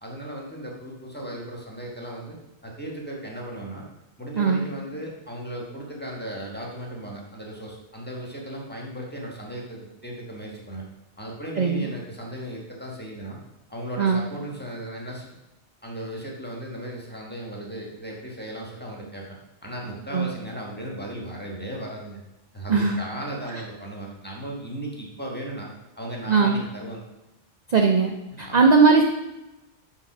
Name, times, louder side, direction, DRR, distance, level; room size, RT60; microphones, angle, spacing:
voice 1, 0.0-2.4 2.6-3.8 4.2-10.8 11.2-13.4 13.7-15.2 15.8-22.2 22.5-25.7 26.0-27.0 28.4-28.6, right 1 dB, 10° left, -2 dB, 1.4 m, -36 dB
voice 2, 11.6-11.9 14.0-14.2 20.1-20.3 22.7-23.0 23.5-23.6 26.3-26.6 27.7-28.1 28.4-29.0, right 4 dB, 45° right, 2 dB, 0.6 m, -19 dB
5.8 x 4.7 x 6.0 m, 0.99 s
omnidirectional pair, 1.2 m